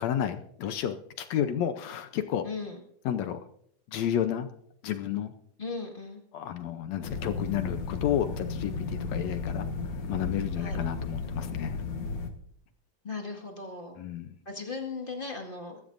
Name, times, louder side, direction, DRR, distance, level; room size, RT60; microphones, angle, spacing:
voice 1, 0.0-2.4 3.1-3.4 3.9-4.5 4.8-5.3 6.3-9.7 10.1-11.7 14.0-14.3, left 10 dB, 70° left, 9 dB, 1.8 m, -31 dB
voice 2, 2.4-2.8 5.6-6.2 10.5-10.8 13.0-14.0 14.4-15.8, left 4 dB, 25° left, 1 dB, 1.3 m, -37 dB
sound 1, 7.0-12.3, left 4 dB, 50° left, 1.9 m, -34 dB
22.0 x 13.0 x 2.6 m, 0.68 s
omnidirectional pair, 3.7 m